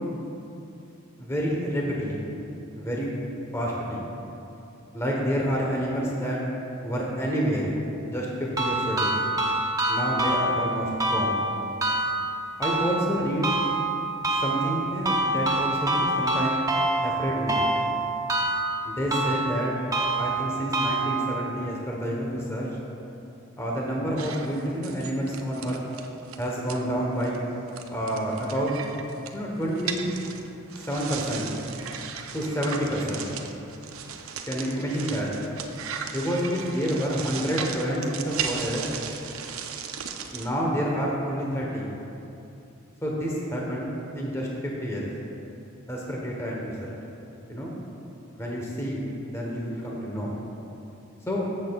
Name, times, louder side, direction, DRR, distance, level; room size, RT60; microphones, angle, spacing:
voice 1, 1.2-2.2 2.8-3.1 3.5-4.0 4.9-6.4 6.8-7.7 8.0-9.1 9.9-11.4 12.6-13.5 14.4-16.6 17.0-17.6 18.8-19.7 20.2-22.7 23.6-25.8 26.4-27.4 27.9-28.7 29.3-30.1 30.7-31.5 32.3-33.3 34.2-35.3 36.1-38.9 40.3-41.9 43.0-45.1 45.9-46.7 47.5-47.7 48.3-49.0 49.3-50.4 51.3-51.5, equal, 15° left, -3 dB, 1.0 m, -28 dB
sound 1, 8.6-21.5, right 2 dB, 15° right, 0.7 m, -26 dB
sound 2, 24.2-26.8 27.2-27.4 27.7-40.5, right 7 dB, 85° right, 0.6 m, -36 dB
14.5 x 7.6 x 2.3 m, 2.8 s
head